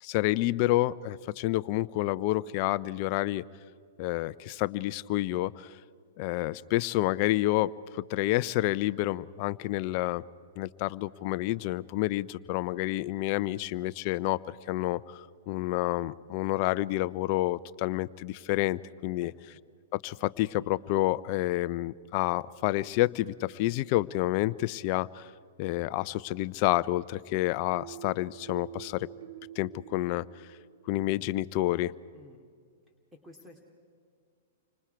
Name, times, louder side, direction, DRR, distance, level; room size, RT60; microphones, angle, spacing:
voice 1, 0.0-3.4 4.0-5.7 6.2-10.2 10.6-19.3 19.9-25.3 25.6-29.1 29.6-30.5 30.9-31.9, left 16 dB, 45° left, 18 dB, 0.7 m, -29 dB
sound 1, 27.7-31.4, right 12 dB, 65° right, 0.7 m, -47 dB
voice 2, 32.1-32.5 33.1-33.6, left 2 dB, 10° right, 2 dB, 2.7 m, -53 dB
29.5 x 25.5 x 4.7 m, 2.1 s
hypercardioid pair, 110°, 0 cm